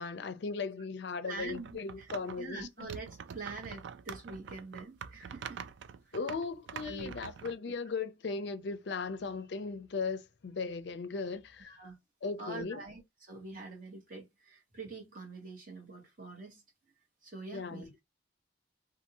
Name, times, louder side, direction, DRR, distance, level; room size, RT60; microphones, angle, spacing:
voice 1, 0.0-2.9 6.1-11.7 12.2-12.8 17.5-17.9, left 4 dB, 65° left, 0.4 m, -37 dB
voice 2, 1.2-2.1 2.4-5.6 6.0-6.1 6.8-7.1 11.6-12.0 12.4-16.6 17.2-17.9, right 3 dB, 45° right, 1.3 m, -45 dB
sound 1, 1.5-2.4 2.8-7.5, right 7 dB, 70° right, 0.3 m, -45 dB
2.6 x 2.5 x 2.9 m
head